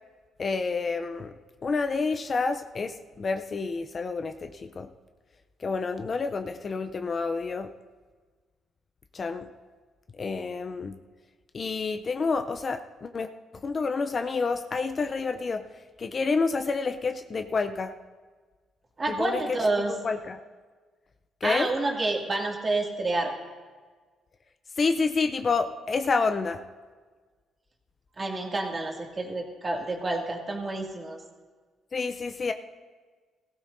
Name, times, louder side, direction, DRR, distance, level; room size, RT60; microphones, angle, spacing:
voice 1, 0.4-1.3 1.6-4.9 5.6-7.7 9.1-9.5 10.2-11.0 11.5-15.6 16.0-17.9 19.1-19.4 19.9-20.4 21.4-21.7 24.8-26.6 31.9-32.5, left 4 dB, 40° left, 8 dB, 0.5 m, -29 dB
voice 2, 19.0-19.9 21.4-23.3 28.2-31.2, right 2 dB, 30° right, 0 dB, 2.3 m, -29 dB
17.5 x 15.5 x 2.6 m, 1.5 s
cardioid pair, 90°, 0 cm